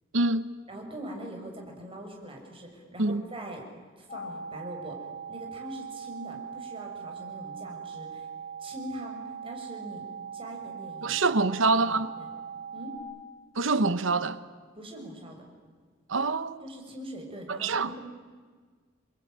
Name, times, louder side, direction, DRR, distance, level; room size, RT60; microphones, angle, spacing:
voice 1, 0.1-0.5 3.0-3.2 11.0-12.1 13.5-14.4 16.1-16.6 17.5-17.9, right 3 dB, 75° right, 1.1 m, -25 dB
voice 2, 0.7-3.6 4.0-8.3 8.6-10.0 10.3-12.3 12.7-13.0 14.8-15.5 16.6-18.0, right 1 dB, 30° right, 5.9 m, -42 dB
sound 1, 4.1-13.0, right 6 dB, 35° left, 6.4 m, -40 dB
28.5 x 22.5 x 9.0 m
head